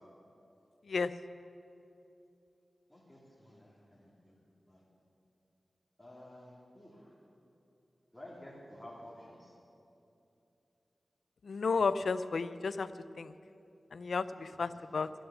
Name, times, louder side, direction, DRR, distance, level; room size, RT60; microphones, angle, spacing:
voice 1, 2.9-4.1 4.7-4.8 6.0-7.1 8.1-9.5, left 1 dB, 10° left, -5 dB, 3.0 m, -52 dB
voice 2, 11.4-12.9 13.2-13.3 13.9-15.1, left 4 dB, 80° left, 14 dB, 0.4 m, -32 dB
13.0 x 10.0 x 7.1 m, 2.7 s
cardioid pair, 50°, 0 cm